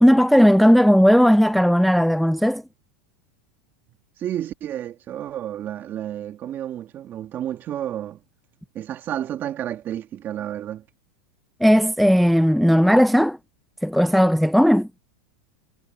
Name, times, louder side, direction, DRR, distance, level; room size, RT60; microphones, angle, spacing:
voice 1, 0.0-2.6 11.6-13.4 13.8-14.9, equal, ahead, 0.4 m, -16 dB
voice 2, 4.2-8.2 8.7-10.8, right 11 dB, 30° right, 2.0 m, -31 dB
supercardioid pair, 135°, 6 cm